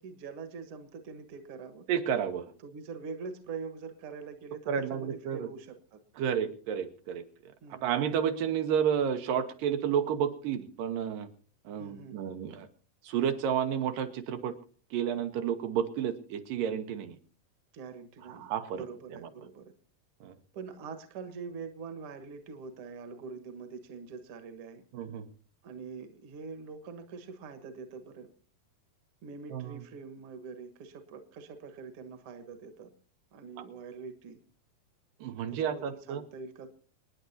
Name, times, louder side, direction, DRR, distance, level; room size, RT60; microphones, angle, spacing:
voice 1, 0.0-1.9 2.6-6.0 7.6-7.9 11.8-12.1 17.7-19.6 20.5-24.8 25.6-28.3 29.2-32.9 33.3-34.4 35.5-36.7, right 5 dB, 50° right, 8 dB, 1.8 m, -44 dB
voice 2, 1.9-2.5 4.7-5.5 6.2-7.2 7.7-11.3 11.7-12.7 13.0-14.6 14.9-17.2 18.3-18.8 19.1-19.3 20.2-20.4 24.9-25.3 29.5-29.8 33.6-33.7 35.2-36.2, right 8 dB, 80° right, 7 dB, 2.7 m, -31 dB
27.5 x 9.9 x 2.8 m, 0.39 s
omnidirectional pair, 3.9 m